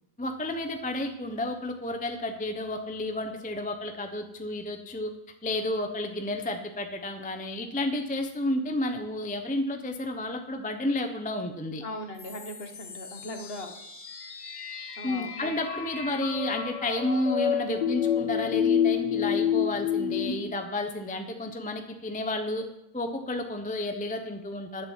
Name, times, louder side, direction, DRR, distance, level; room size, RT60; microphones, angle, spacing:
voice 1, 0.2-5.1 5.4-11.8 15.0-22.6 22.9-24.8, left 1 dB, 10° left, 5 dB, 0.5 m, -31 dB
voice 2, 11.8-13.7 15.0-15.5, left 1 dB, 40° left, 5 dB, 1.4 m, -39 dB
sound 1, 12.2-20.3, left 8 dB, 75° left, 1.8 m, -29 dB
11.0 x 7.6 x 7.4 m, 0.85 s
omnidirectional pair, 1.8 m